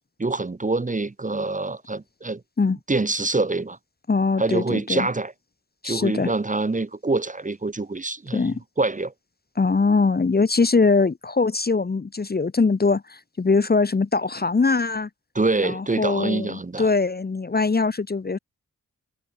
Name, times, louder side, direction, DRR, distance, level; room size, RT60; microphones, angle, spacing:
voice 1, 0.2-2.4 2.9-3.8 4.4-5.3 5.8-9.1 15.3-16.9, right 3 dB, 25° right, 1.0 m, -25 dB
voice 2, 4.1-5.1 5.8-6.3 8.3-8.6 9.6-15.1 15.6-18.4, left 4 dB, 30° left, 0.8 m, -22 dB
wide cardioid pair, 75°, 33 cm